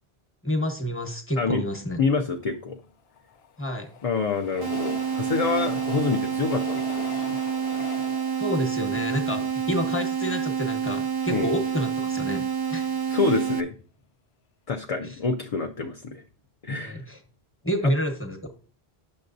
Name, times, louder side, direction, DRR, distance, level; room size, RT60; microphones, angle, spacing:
voice 1, 0.4-2.0 3.6-3.9 8.4-12.9 15.0-15.2 16.8-17.2 17.6-18.5, equal, 15° left, 3 dB, 1.0 m, -29 dB
voice 2, 2.0-2.8 4.0-7.1 9.4-9.5 11.3-11.5 13.1-13.7 14.7-16.2 16.6-17.0, left 4 dB, 45° left, 3 dB, 0.5 m, -27 dB
Train, 2.8-10.1 10.6-10.7 10.9-11.0, left 6 dB, 80° left, 0.8 m, -42 dB
sound 1, 4.6-13.6, right 7 dB, 40° right, 0.3 m, -28 dB
9.5 x 6.6 x 2.6 m, 0.40 s
omnidirectional pair, 1.1 m